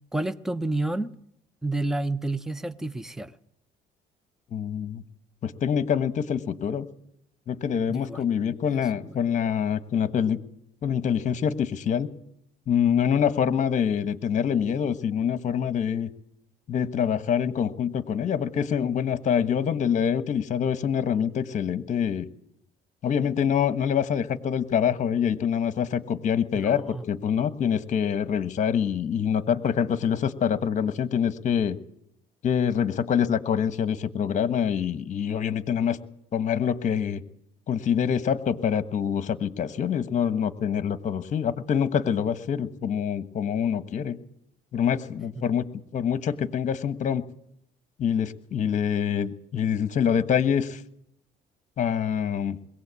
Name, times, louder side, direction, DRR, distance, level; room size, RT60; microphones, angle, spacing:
voice 1, 0.1-1.1 1.6-3.3 7.9-8.2 9.1-9.2 26.5-27.0 45.4-45.5, right 2 dB, 5° right, 0.7 m, -30 dB
voice 2, 4.5-5.0 5.4-6.9 7.5-10.4 10.8-12.1 12.7-16.1 16.7-22.3 23.0-31.8 32.4-36.0 36.3-37.2 37.7-44.2 44.7-45.7 45.9-47.2 48.0-50.8 51.8-52.6, left 8 dB, 45° left, 1.3 m, -25 dB
22.0 x 17.0 x 8.3 m
cardioid pair, 110°, 17 cm